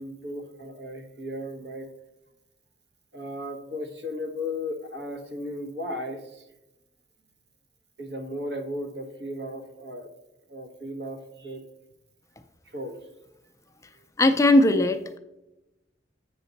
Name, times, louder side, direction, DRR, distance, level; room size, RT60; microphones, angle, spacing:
voice 1, 0.0-1.9 3.1-6.5 8.0-10.1 10.5-11.6 12.6-13.0, left 1 dB, 70° right, 5 dB, 1.2 m, -35 dB
voice 2, 14.2-15.2, left 1 dB, 15° left, 8 dB, 0.4 m, -19 dB
8.2 x 6.0 x 4.0 m, 0.91 s
head